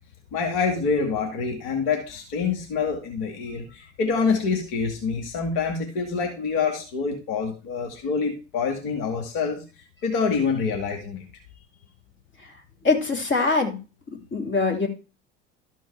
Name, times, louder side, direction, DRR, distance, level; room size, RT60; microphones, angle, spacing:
voice 1, 0.3-9.6 10.0-11.2, left 5 dB, 65° left, 3 dB, 2.1 m, -26 dB
voice 2, 12.8-13.8 14.3-14.9, left 3 dB, 35° left, 3 dB, 2.9 m, -22 dB
13.0 x 4.6 x 4.7 m, 0.32 s
hypercardioid pair, 70°, 35 cm